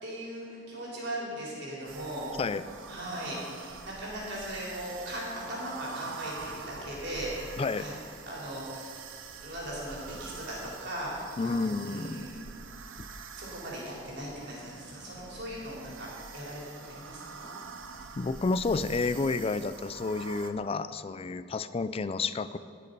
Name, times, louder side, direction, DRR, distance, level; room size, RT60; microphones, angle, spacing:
voice 1, 0.0-2.3 2.9-7.9 8.3-9.0 9.4-11.2 11.4-12.4 13.4-17.5, right 1 dB, 60° right, -5 dB, 3.8 m, -39 dB
sound 1, 1.9-20.5, right 5 dB, 85° right, 0.8 m, -45 dB
voice 2, 7.6-7.9 11.4-12.2 13.0-13.1 18.2-22.6, left 3 dB, 30° left, 13 dB, 0.4 m, -30 dB
18.5 x 6.7 x 5.4 m, 2.3 s
head